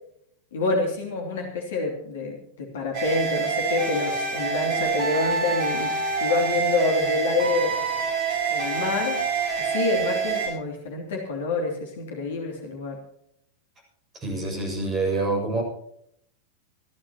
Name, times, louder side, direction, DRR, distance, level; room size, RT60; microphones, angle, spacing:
voice 1, 0.5-7.8 8.5-9.2 9.6-13.0, left 3 dB, 60° left, 1 dB, 2.9 m, -27 dB
sound 1, 2.9-10.5, right 5 dB, 45° right, 7.3 m, -26 dB
voice 2, 14.1-15.6, right 3 dB, 25° right, 2 dB, 7.0 m, -26 dB
27.0 x 11.5 x 3.0 m, 0.71 s
figure-of-eight pair, 90°, 0 cm